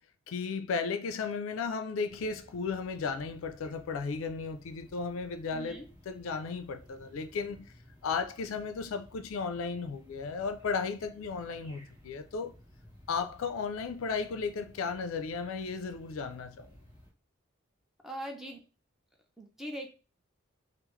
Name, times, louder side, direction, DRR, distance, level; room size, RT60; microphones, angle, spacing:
voice 1, 0.3-5.8 6.1-7.7 8.0-12.6 13.1-16.7, left 5 dB, 70° left, 0.4 m, -35 dB
sound 1, 2.1-17.1, left 1 dB, 20° right, 1.4 m, -57 dB
voice 2, 5.5-5.9 18.0-18.6 19.4-19.9, right 1 dB, ahead, 0.6 m, -41 dB
3.6 x 2.0 x 3.0 m
head